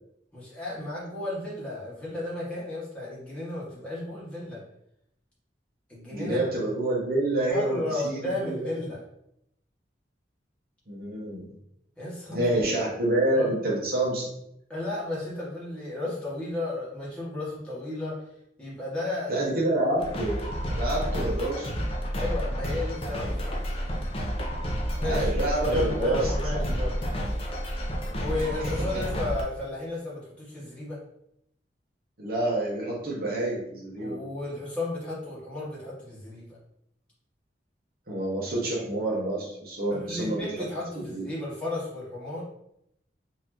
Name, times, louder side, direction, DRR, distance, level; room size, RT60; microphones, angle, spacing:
voice 1, 0.3-4.6 5.9-6.4 7.5-9.0 12.0-12.6 13.4-13.5 14.7-18.3 18.6-19.5 22.2-23.6 25.0-26.9 28.2-31.0 34.0-36.6 39.9-42.4, left 2 dB, 5° left, -8 dB, 1.1 m, -33 dB
voice 2, 6.1-8.7 10.9-11.5 12.3-14.3 19.3-20.4 20.7-21.7 25.1-26.6 28.9-29.0 32.2-34.2 38.1-40.5 40.9-41.3, right 1 dB, 55° right, -4 dB, 0.8 m, -28 dB
sound 1, 20.0-29.4, equal, 30° left, 0.6 m, -30 dB
4.0 x 2.6 x 2.9 m, 0.76 s
head